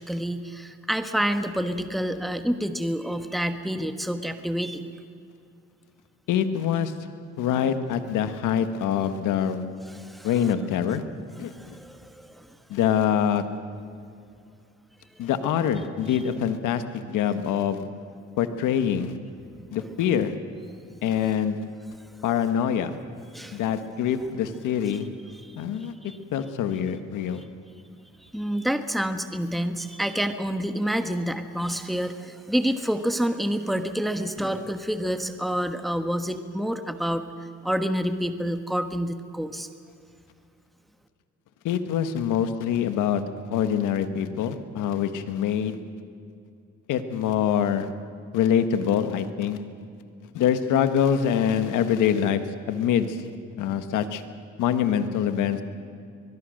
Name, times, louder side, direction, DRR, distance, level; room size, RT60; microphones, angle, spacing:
voice 1, 0.0-4.8 9.9-10.3 11.5-12.5 16.1-16.2 23.3-23.6 25.4-26.2 28.3-37.2 37.6-39.7, equal, ahead, 8 dB, 1.3 m, -28 dB
voice 2, 6.3-6.9 7.4-9.6 10.2-11.0 11.4-11.7 12.7-13.4 15.2-17.9 18.4-19.1 19.7-20.3 21.0-21.6 22.2-22.9 23.5-25.1 25.6-25.9 26.3-27.4 41.6-43.2 43.5-45.8 46.9-47.9 48.3-49.6 50.3-53.2 53.6-54.2 54.6-55.6, left 8 dB, 90° left, 9 dB, 1.5 m, -25 dB
22.5 x 22.0 x 6.5 m, 2.4 s
cardioid pair, 90°, 30 cm